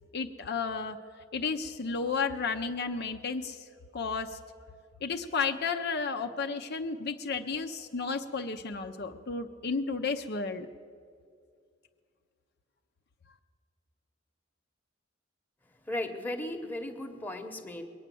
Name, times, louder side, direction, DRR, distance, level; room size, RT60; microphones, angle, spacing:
voice 1, 0.1-1.0 1.3-3.7 3.9-4.4 5.0-10.7, left 4 dB, 55° left, 5 dB, 0.6 m, -32 dB
voice 2, 15.9-17.9, left 1 dB, 10° left, 3 dB, 1.1 m, -36 dB
21.0 x 9.0 x 7.6 m, 2.2 s
head